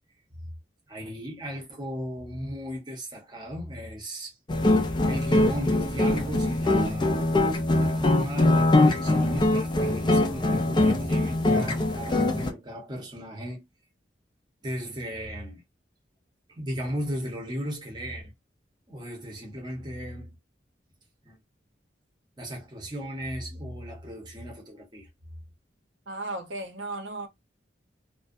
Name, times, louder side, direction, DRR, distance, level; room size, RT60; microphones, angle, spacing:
voice 1, 0.9-4.4 5.1-7.2 7.8-13.6 14.6-15.6 16.5-18.3 18.9-20.3 21.2-21.4 22.4-25.4, equal, 25° right, 0.7 m, -36 dB
sound 1, 4.5-12.5, left 2 dB, 25° left, 0.4 m, -23 dB
voice 2, 26.1-27.3, right 2 dB, 85° right, 0.6 m, -35 dB
2.4 x 2.2 x 2.5 m
head